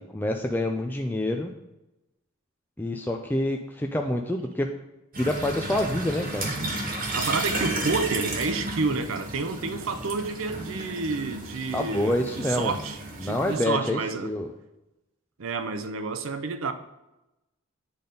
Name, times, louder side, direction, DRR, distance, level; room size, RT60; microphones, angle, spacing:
voice 1, 0.1-1.5 2.8-4.7 5.2-6.5 11.7-12.8 13.2-14.5, left 1 dB, 10° left, 2 dB, 0.4 m, -27 dB
sound 1, 5.1-13.5, right 2 dB, 45° right, 1.3 m, -33 dB
voice 2, 7.1-14.3 15.4-16.7, right 4 dB, 70° right, 9 dB, 0.6 m, -30 dB
8.7 x 3.9 x 5.2 m, 0.96 s
head